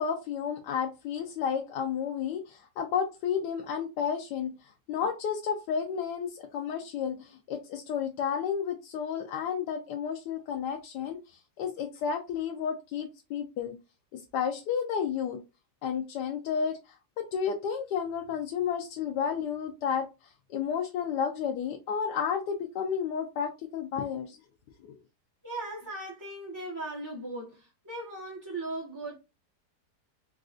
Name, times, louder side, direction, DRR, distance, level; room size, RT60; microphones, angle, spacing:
voice 1, 0.0-4.5 4.9-11.2 11.6-13.8 14.1-15.4 15.8-16.8 17.2-20.1 20.5-24.4 24.8-25.0, left 7 dB, 90° left, 1.2 m, -31 dB
voice 2, 25.4-29.1, right 2 dB, 15° right, 0.7 m, -38 dB
4.0 x 2.4 x 2.4 m
omnidirectional pair, 1.8 m